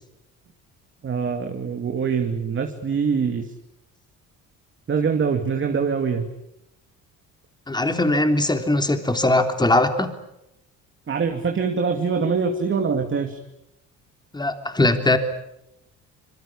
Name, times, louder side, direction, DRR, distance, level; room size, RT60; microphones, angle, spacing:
voice 1, 1.0-3.5 4.9-6.3 11.1-13.4, right 5 dB, 35° right, 4 dB, 2.6 m, -24 dB
voice 2, 7.7-10.1 14.3-15.2, left 2 dB, 15° left, 7 dB, 3.4 m, -20 dB
26.0 x 23.0 x 8.6 m, 0.85 s
cardioid pair, 110°, 33 cm